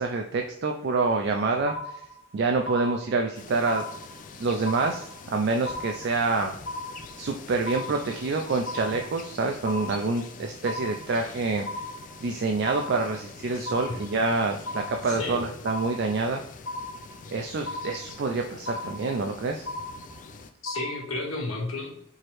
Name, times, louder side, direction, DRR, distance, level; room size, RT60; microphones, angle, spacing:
voice 1, 0.0-2.0 2.3-3.8 4.4-6.5 7.2-11.7 12.2-16.4 17.3-19.7, right 3 dB, 55° right, 3 dB, 0.4 m, -27 dB
sound 1, 1.7-2.3 2.7-3.3 3.7-4.3 4.7-5.3 5.7-6.3 6.7-7.3 7.7-8.3 8.7-9.3 9.7-10.3 10.7-11.3 11.7-12.3 12.7-13.3 13.7-14.3 14.7-15.3 15.7-16.3 16.7-17.3 17.7-18.3 18.7-19.3 19.7-20.3 20.7-21.3, left 2 dB, 60° left, 0.8 m, -36 dB
sound 2, 3.3-20.5, left 5 dB, 40° left, 0.4 m, -45 dB
voice 2, 13.5-14.0 15.0-15.4 20.6-22.1, left 2 dB, 80° left, -1 dB, 1.3 m, -33 dB
4.6 x 3.1 x 3.0 m, 0.75 s
head